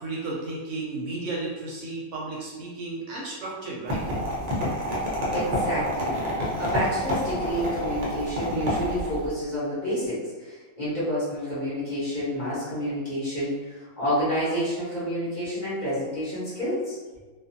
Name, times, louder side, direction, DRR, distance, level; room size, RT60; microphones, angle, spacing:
voice 1, 0.0-4.3, right 2 dB, 70° right, -4 dB, 0.8 m, -33 dB
sound 1, 3.9-9.3, equal, 50° right, 0.5 m, -28 dB
voice 2, 5.3-17.0, equal, 35° left, -11 dB, 1.0 m, -29 dB
2.5 x 2.4 x 2.6 m, 1.3 s
omnidirectional pair, 1.5 m